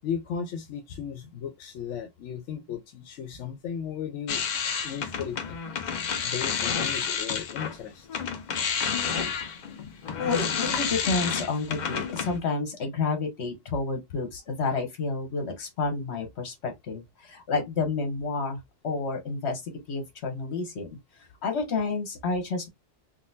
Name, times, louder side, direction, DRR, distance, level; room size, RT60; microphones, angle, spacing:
voice 1, 0.0-4.4 4.8-5.7 6.2-8.1, left 8 dB, 90° left, 0.9 m, -35 dB
sound 1, 4.3-7.8 8.1-12.4, left 6 dB, 55° left, 0.6 m, -30 dB
voice 2, 10.2-20.9 21.4-22.7, left 4 dB, 70° left, 1.3 m, -30 dB
3.8 x 2.2 x 2.5 m
omnidirectional pair, 1.2 m